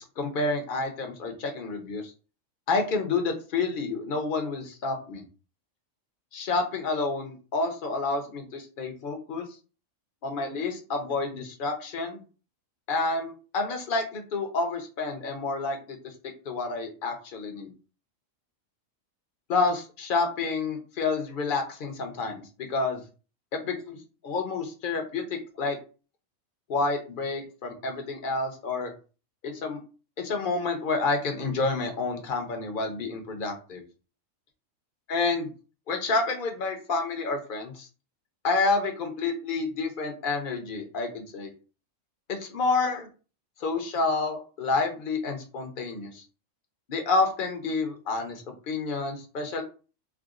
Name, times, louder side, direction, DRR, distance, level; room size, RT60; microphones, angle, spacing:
voice 1, 0.0-2.0 2.7-5.2 6.3-9.5 10.2-12.2 12.9-16.1 16.5-17.7 19.5-23.0 23.6-24.0 24.2-25.8 26.7-28.9 29.4-29.8 30.2-33.8 35.1-35.5 35.9-37.9 38.4-41.5 42.3-43.1 43.6-46.2 46.9-49.6, left 3 dB, 45° left, 4 dB, 0.8 m, -29 dB
4.7 x 2.1 x 2.4 m, 0.35 s
omnidirectional pair, 1.4 m